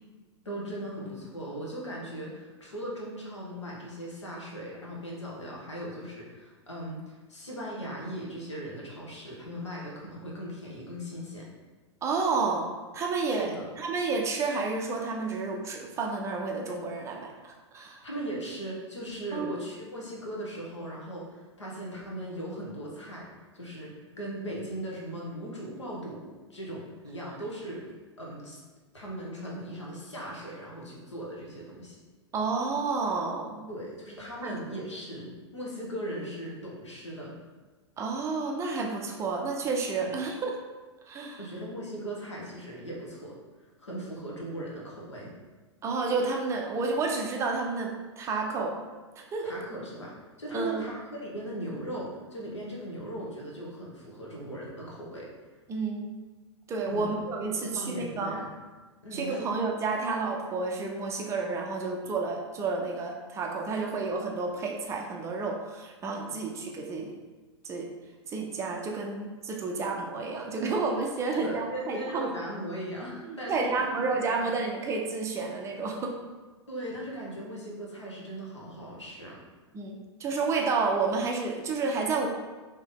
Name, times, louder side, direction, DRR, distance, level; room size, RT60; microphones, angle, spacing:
voice 1, 0.4-7.0 7.3-11.5 13.3-13.6 18.0-23.3 23.5-27.8 28.2-28.6 28.9-32.0 33.7-37.4 40.0-40.1 41.4-43.3 43.8-45.3 49.4-50.1 50.4-55.3 56.9-58.5 59.0-59.5 71.3-73.9 76.7-79.4, right 1 dB, 75° left, -3 dB, 1.1 m, -38 dB
voice 2, 12.0-12.7 12.9-18.0 19.3-19.5 32.3-33.7 34.4-34.6 38.0-40.5 41.1-41.4 45.8-48.7 49.2-49.6 50.5-50.8 55.7-56.1 56.7-58.4 59.1-67.1 67.6-67.9 68.3-72.3 73.2-76.2 79.7-82.3, right 4 dB, 20° right, 1 dB, 0.4 m, -30 dB
3.4 x 2.8 x 3.7 m, 1.3 s
figure-of-eight pair, 100°, 15 cm